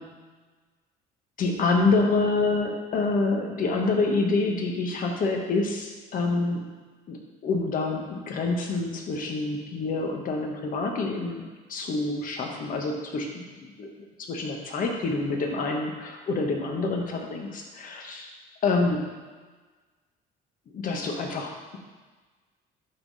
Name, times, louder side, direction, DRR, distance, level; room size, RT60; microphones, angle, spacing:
voice 1, 1.4-6.7 7.1-11.4 11.7-13.9 14.2-18.3 18.6-19.2 20.7-21.8, left 3 dB, 55° left, 2 dB, 1.4 m, -27 dB
11.5 x 4.0 x 4.1 m, 1.4 s
cardioid pair, 110°, 17 cm